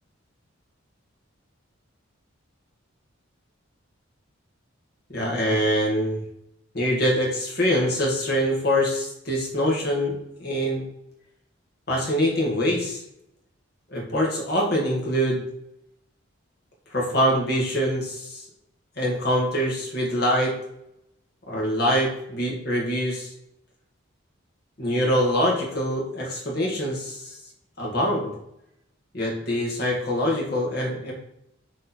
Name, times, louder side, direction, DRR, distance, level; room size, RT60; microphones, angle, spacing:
voice 1, 5.1-6.2 6.7-10.8 11.9-13.0 13.9-15.4 16.9-18.5 19.0-20.5 21.5-23.3 24.8-27.4 27.8-28.3 29.1-31.1, equal, 50° left, -2 dB, 1.9 m, -24 dB
6.6 x 3.7 x 4.2 m, 0.81 s
head